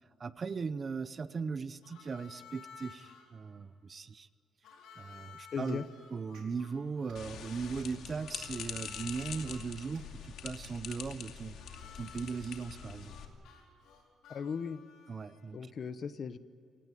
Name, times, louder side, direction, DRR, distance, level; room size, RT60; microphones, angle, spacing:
voice 1, 0.2-4.3 5.0-5.8 6.1-11.6 12.0-13.2 15.1-15.6, right 5 dB, 30° right, 14 dB, 0.7 m, -38 dB
Harmonica, 1.8-3.3 4.6-9.6 11.6-15.5, left 6 dB, 90° left, 4.7 m, -55 dB
voice 2, 5.5-5.8 14.3-14.8 15.5-16.4, left 6 dB, 40° left, 13 dB, 1.0 m, -37 dB
sound 1, 5.6-5.8 6.3-6.5 7.0-7.3 7.7-8.0 8.5-8.6 9.2-9.3 9.9-10.0 10.6-10.8, right 10 dB, 85° right, 4.6 m, -57 dB
sound 2, 7.2-13.3, left 8 dB, 70° left, 2.6 m, -44 dB
27.5 x 18.0 x 9.1 m, 2.6 s
cardioid pair, 145°, 0 cm